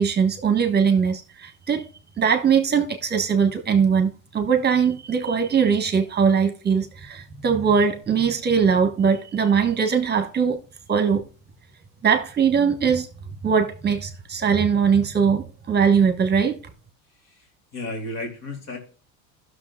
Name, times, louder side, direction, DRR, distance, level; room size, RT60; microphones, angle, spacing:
voice 1, 0.0-1.8 2.2-10.6 10.9-11.2 12.0-13.1 13.4-16.6, right 6 dB, 25° right, 1.5 m, -21 dB
voice 2, 17.2-18.8, left 2 dB, 40° left, 2.9 m, -34 dB
16.0 x 6.6 x 2.4 m
supercardioid pair, 110°, 41 cm